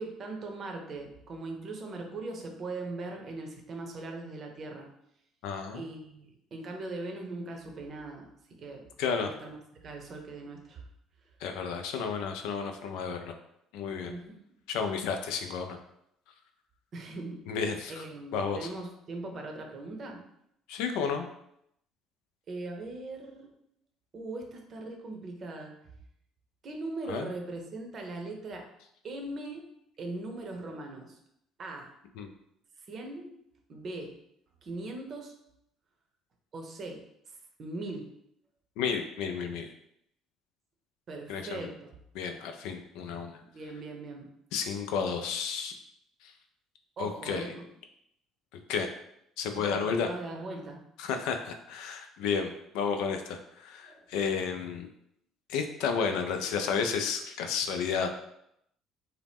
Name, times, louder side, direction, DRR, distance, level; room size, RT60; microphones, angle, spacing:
voice 1, 0.0-4.9 5.7-8.3 8.6-8.8 9.1-10.8 14.1-14.4 16.9-17.4 17.9-20.2 22.5-23.5 24.1-25.8 26.6-28.7 29.0-29.6 30.0-31.2 31.6-31.9 32.9-33.3 33.7-34.1 34.6-35.3 36.5-37.0 37.6-38.1 41.1-41.9 43.3-44.3 47.0-47.6 49.6-50.8 53.8-54.1, right 2 dB, 50° right, 3 dB, 0.6 m, -40 dB
voice 2, 5.4-5.8 9.0-9.3 11.4-13.3 13.7-14.1 14.7-15.8 17.5-18.0 18.3-18.7 20.7-21.3 27.1-27.3 32.2-32.3 38.8-39.7 41.3-41.7 42.1-43.4 44.5-45.7 47.0-47.5 48.7-48.9 49.4-50.1 51.0-54.9 55.5-58.1, left 6 dB, 75° left, 6 dB, 0.3 m, -32 dB
2.7 x 2.0 x 3.4 m, 0.76 s
hypercardioid pair, 60°, 0 cm